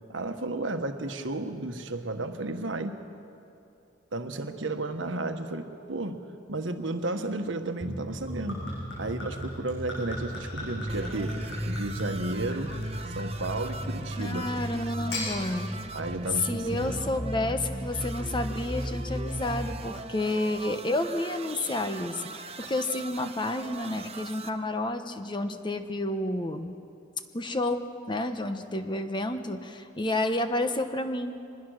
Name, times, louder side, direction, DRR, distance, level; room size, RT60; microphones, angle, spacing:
voice 1, 0.1-3.0 4.1-8.7 9.0-12.7 13.0-14.5 15.9-17.0, right 2 dB, 75° right, 7 dB, 1.3 m, -33 dB
sound 1, 7.8-19.7, equal, ahead, 3.1 m, -36 dB
Gurgling / Chink clink / Liquid, 8.1-14.2 14.9-15.3, left 1 dB, 65° left, 7.7 m, -39 dB
sound 2, 10.9-24.5, right 3 dB, 30° right, 0.8 m, -42 dB
voice 2, 14.2-15.7 16.4-26.8 27.3-31.4, left 2 dB, 25° left, 8 dB, 0.9 m, -30 dB
24.0 x 20.5 x 6.5 m, 2.7 s
head